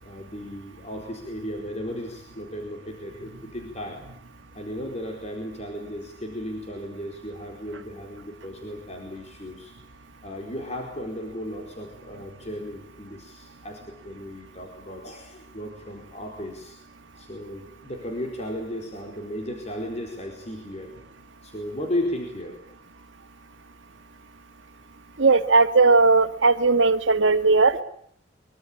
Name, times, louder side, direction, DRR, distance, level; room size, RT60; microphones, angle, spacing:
voice 1, 0.0-4.0 4.5-9.7 10.2-16.8 17.2-20.9 21.4-22.6, left 1 dB, 35° left, 2 dB, 4.5 m, -35 dB
voice 2, 25.2-27.8, right 3 dB, 85° right, 9 dB, 1.8 m, -18 dB
24.5 x 24.0 x 8.8 m, 0.65 s
head